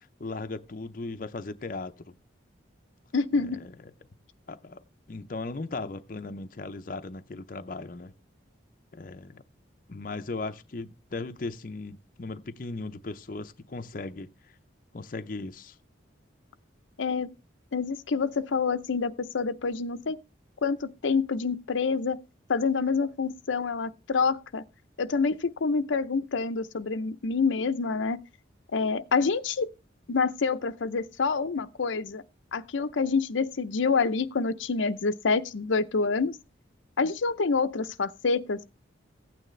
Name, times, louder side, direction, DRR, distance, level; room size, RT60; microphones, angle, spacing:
voice 1, 0.0-2.2 3.4-3.9 4.5-4.8 5.1-8.1 8.9-9.4 9.9-14.5 14.9-15.8, left 3 dB, 45° left, 0.6 m, -37 dB
voice 2, 3.1-3.6 17.0-17.3 17.7-20.2 20.6-22.2 22.5-24.6 25.0-28.2 28.7-29.7 30.1-32.2 32.5-36.3 37.0-38.6, left 4 dB, 85° left, 0.6 m, -27 dB
15.5 x 9.1 x 3.2 m
head